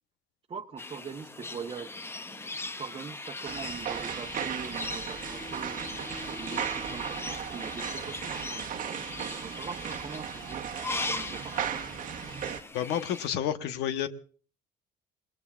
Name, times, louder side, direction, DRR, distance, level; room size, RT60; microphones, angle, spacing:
voice 1, 0.5-2.5 2.8-5.8 6.3-8.7 9.2-11.9, right 6 dB, 35° right, 2 dB, 1.0 m, -43 dB
sound 1, 0.8-13.3, left 2 dB, 15° left, 0.7 m, -39 dB
sound 2, 3.4-12.6, right 8 dB, 55° right, 1.1 m, -36 dB
voice 2, 12.7-14.1, left 10 dB, 85° left, 9 dB, 1.1 m, -30 dB
29.0 x 20.0 x 2.4 m, 0.42 s
cardioid pair, 110°, 17 cm